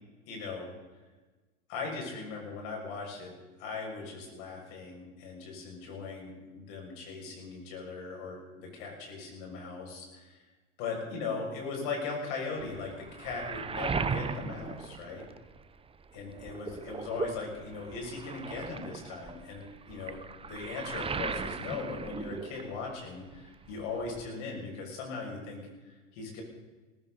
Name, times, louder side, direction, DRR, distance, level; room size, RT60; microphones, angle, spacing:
voice 1, 0.3-0.7 1.7-3.3 3.6-10.4 10.8-15.2 16.1-26.4, left 4 dB, 65° left, 0 dB, 6.5 m, -39 dB
Waves surf, 12.6-15.8 16.1-23.1 23.3-24.3, right 5 dB, 15° right, 0.7 m, -38 dB
18.0 x 16.0 x 4.0 m, 1.3 s
hypercardioid pair, 90°, 39 cm